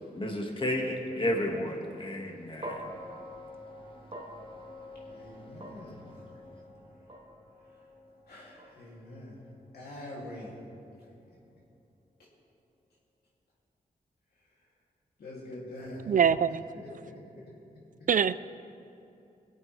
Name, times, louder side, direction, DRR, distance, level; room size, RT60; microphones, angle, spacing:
voice 1, 0.1-2.8, left 1 dB, 35° left, 1 dB, 2.1 m, -32 dB
sound 1, 2.6-10.9, equal, 35° right, 1.9 m, -46 dB
voice 2, 5.1-6.3 8.3-9.4 9.7-10.6 11.3-11.4 15.2-16.1 16.7-17.2, left 1 dB, 80° left, -5 dB, 3.2 m, -44 dB
voice 3, 16.1-16.6 18.1-18.4, right 7 dB, 55° right, 15 dB, 0.4 m, -23 dB
21.0 x 8.3 x 3.6 m, 2.7 s
cardioid pair, 60°, 16 cm